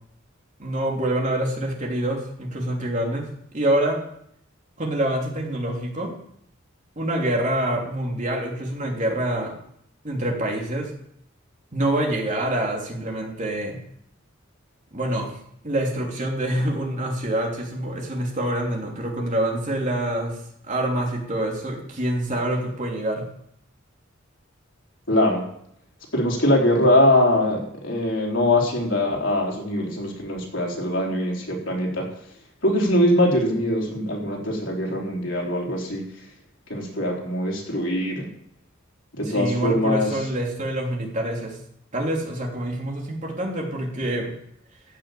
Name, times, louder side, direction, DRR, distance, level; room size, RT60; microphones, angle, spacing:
voice 1, 0.6-3.2 3.5-4.0 4.8-6.1 7.0-9.6 10.0-10.9 11.7-13.8 14.9-15.3 15.6-20.4 20.7-23.2 39.2-41.6 41.9-44.3, right 1 dB, 40° right, -1 dB, 3.2 m, -26 dB
voice 2, 25.1-25.4 26.1-32.1 32.6-36.0 36.7-38.3 39.1-40.1, left 1 dB, 65° left, -1 dB, 4.1 m, -22 dB
14.5 x 6.9 x 8.4 m, 0.71 s
head